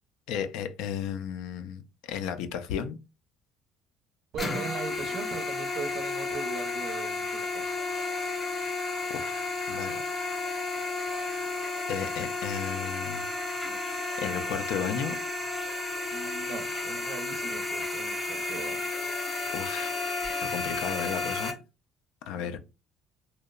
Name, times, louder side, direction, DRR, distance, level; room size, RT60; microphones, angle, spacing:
voice 1, 0.3-1.8 2.1-3.0 9.1-10.3 11.9-13.2 13.8-15.2 19.5-20.0 20.4-21.5 22.3-22.6, left 8 dB, 85° left, 0.3 m, -34 dB
voice 2, 4.3-7.7 16.1-18.9 22.3-22.6, right 6 dB, 55° right, 0.5 m, -40 dB
sound 1, 4.4-21.5, left 3 dB, 15° left, 0.8 m, -32 dB
2.8 x 2.0 x 2.3 m
cardioid pair, 140°, 0 cm